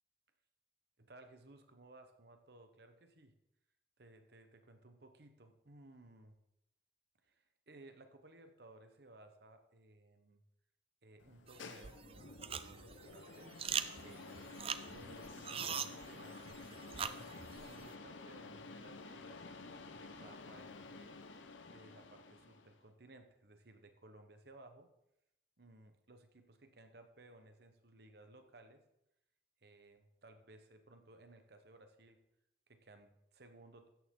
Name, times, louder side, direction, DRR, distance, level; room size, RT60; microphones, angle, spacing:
voice 1, 1.0-3.3 4.0-6.4 7.2-10.4 11.0-13.5 14.0-14.6 14.9-17.2 17.6-19.4 20.0-21.2 21.7-24.9 25.6-28.8 29.6-32.2 32.7-33.9, right 2 dB, 55° right, 7 dB, 1.2 m, -59 dB
sound 1, 11.2-22.8, left 3 dB, 90° left, 0.9 m, -52 dB
sound 2, 11.5-17.9, right 7 dB, 30° right, 0.4 m, -43 dB
13.0 x 8.9 x 3.8 m, 0.83 s
head